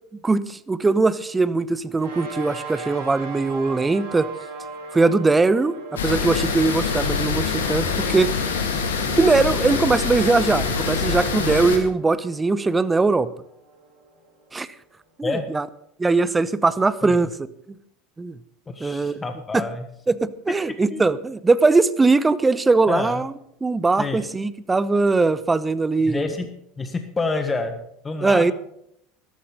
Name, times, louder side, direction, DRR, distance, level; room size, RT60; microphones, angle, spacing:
voice 1, 0.2-4.3 4.9-5.7 6.0-8.3 9.2-13.3 14.5-14.7 15.2-15.7 16.0-17.3 18.2-18.4 18.8-19.2 19.5-19.7 20.1-23.3 23.6-26.3 28.2-28.5, right 3 dB, 15° right, 17 dB, 0.8 m, -20 dB
sound 1, 1.9-14.7, right 3 dB, 75° right, 5.7 m, -40 dB
sound 2, 6.0-11.8, left 5 dB, 80° left, 2.3 m, -25 dB
voice 2, 18.7-19.8 20.9-21.0 22.9-23.2 24.0-24.2 26.1-26.5 26.8-28.5, left 3 dB, 20° left, 8 dB, 1.5 m, -28 dB
13.0 x 13.0 x 5.2 m, 0.74 s
hypercardioid pair, 75°, 0 cm